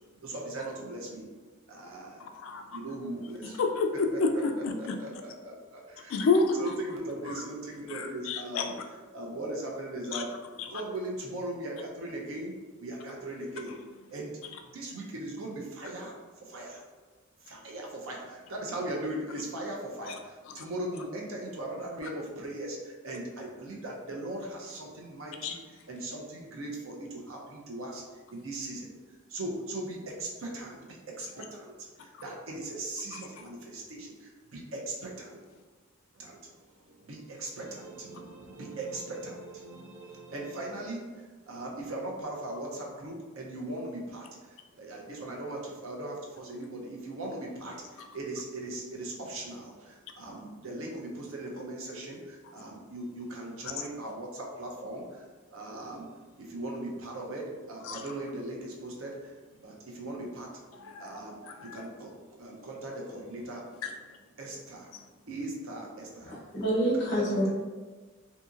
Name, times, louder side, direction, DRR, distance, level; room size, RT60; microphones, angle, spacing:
voice 1, 0.2-1.3 1.7-2.2 2.7-3.6 4.1-4.2 4.8-6.2 6.6-8.7 9.1-10.3 10.7-12.5 12.8-13.7 14.1-14.3 14.7-16.1 16.4-16.8 17.4-25.5 25.9-28.0 28.3-28.9 29.3-31.7 32.0-35.4 36.2-36.5 36.8-41.1 41.5-44.3 44.8-55.2 55.5-56.1 56.4-60.6 61.0-63.8 64.4-64.9 65.3-66.3 66.9-67.5, right 1 dB, 85° right, -1 dB, 0.6 m, -39 dB
voice 2, 2.2-2.8 3.4-5.0 6.1-6.8 7.3-7.4 7.9-8.8 10.1-10.8 20.0-20.1 20.5-20.6 25.4-25.6 31.4-31.5 33.1-33.5 48.0-48.1 53.6-53.9 57.8-58.0 60.7-61.2 61.4-61.8 63.8-64.0 64.9-65.0, left 3 dB, 75° left, 5 dB, 0.3 m, -31 dB
voice 3, 66.2-67.5, right 1 dB, 55° left, -6 dB, 0.9 m, -27 dB
2.7 x 2.7 x 2.4 m, 1.3 s
head